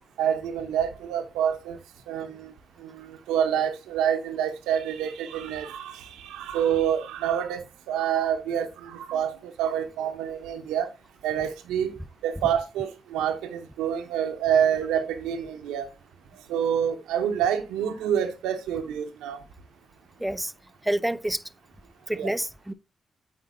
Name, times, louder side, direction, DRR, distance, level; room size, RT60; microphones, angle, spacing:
voice 1, 0.2-1.8 2.1-2.5 2.8-10.9 11.2-11.9 12.2-15.9 16.5-19.4 22.1-22.3, right 9 dB, 90° right, 0.7 m, -27 dB
voice 2, 20.2-20.5 20.8-21.4 22.1-22.7, right 1 dB, 10° right, 0.5 m, -28 dB
8.4 x 4.4 x 2.6 m
supercardioid pair, 40°, 0 cm